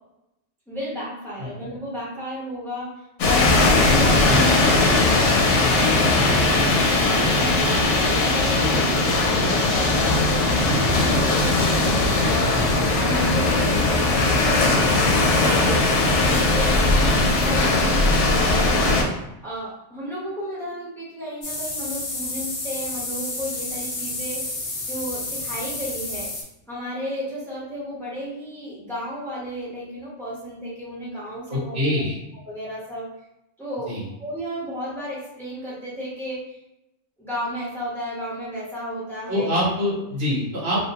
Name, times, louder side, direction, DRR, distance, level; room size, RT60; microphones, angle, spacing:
voice 1, 0.7-5.4 5.9-11.7 12.2-12.6 12.9-26.3 26.7-31.8 32.4-33.1 33.6-36.6 37.2-39.5, equal, ahead, -8 dB, 0.7 m, -33 dB
sound 1, 3.2-19.0, left 2 dB, 70° left, 0.9 m, -19 dB
voice 2, 3.8-4.4 6.1-6.3 12.5-12.7 31.5-32.1 33.9-34.0 39.3-40.8, left 1 dB, 55° right, -6 dB, 1.1 m, -25 dB
sound 2, 21.4-26.4, left 2 dB, 50° left, 0.4 m, -30 dB
2.5 x 2.1 x 2.8 m, 0.87 s
omnidirectional pair, 1.3 m